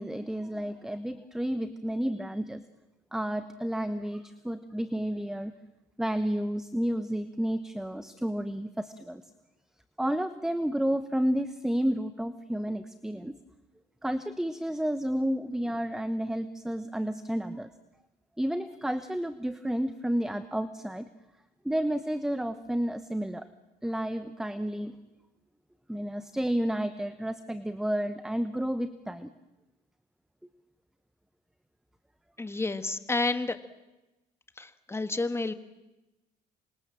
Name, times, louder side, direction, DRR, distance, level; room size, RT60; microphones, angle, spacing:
voice 1, 0.0-2.6 3.1-5.5 6.0-9.2 10.0-13.3 14.0-17.7 18.4-21.1 21.6-23.5 23.8-25.0 25.9-29.3, equal, 5° right, 11 dB, 1.1 m, -31 dB
voice 2, 32.4-33.6 34.6-35.5, left 3 dB, 15° left, 10 dB, 1.6 m, -30 dB
27.0 x 26.0 x 7.6 m, 1.0 s
cardioid pair, 110°, 17 cm